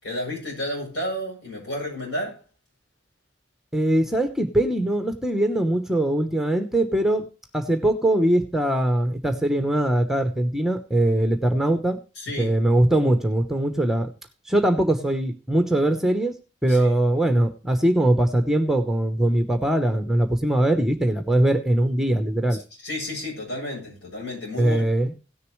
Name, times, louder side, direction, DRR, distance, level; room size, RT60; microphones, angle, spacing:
voice 1, 0.0-2.4 12.2-12.5 16.7-16.9 22.8-24.8, left 1 dB, 80° left, 7.5 m, -31 dB
voice 2, 3.7-7.2 7.5-12.0 12.4-14.1 14.5-16.3 16.6-22.6 24.6-25.1, right 1 dB, ahead, 0.9 m, -21 dB
17.0 x 6.7 x 3.1 m
head